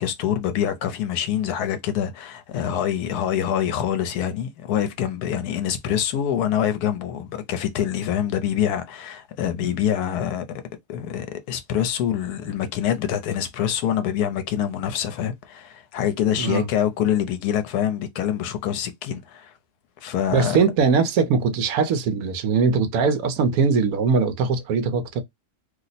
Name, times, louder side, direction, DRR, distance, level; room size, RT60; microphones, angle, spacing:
voice 1, 0.0-10.5 10.9-19.5 20.0-20.6, left 9 dB, 75° left, 1.1 m, -25 dB
voice 2, 16.3-16.7 20.3-25.2, right 5 dB, 70° right, 1.0 m, -21 dB
2.8 x 2.0 x 3.9 m
omnidirectional pair, 1.7 m